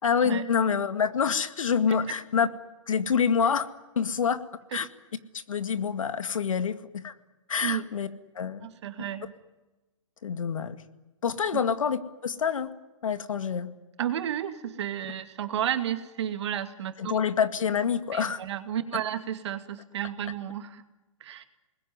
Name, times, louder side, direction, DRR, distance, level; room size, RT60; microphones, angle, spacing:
voice 1, 0.0-2.5 2.9-3.7 4.0-4.4 4.7-4.9 5.3-7.1 7.5-8.1 8.4-8.7 10.2-10.8 11.2-12.7 13.0-13.7 17.0-18.4, left 7 dB, 80° left, 11 dB, 2.0 m, -26 dB
voice 2, 8.6-9.3 11.5-11.6 14.0-17.1 18.1-20.8 21.2-21.5, right 10 dB, 60° right, 9 dB, 2.4 m, -32 dB
28.5 x 20.5 x 9.6 m, 1.1 s
hypercardioid pair, 145°, 17 cm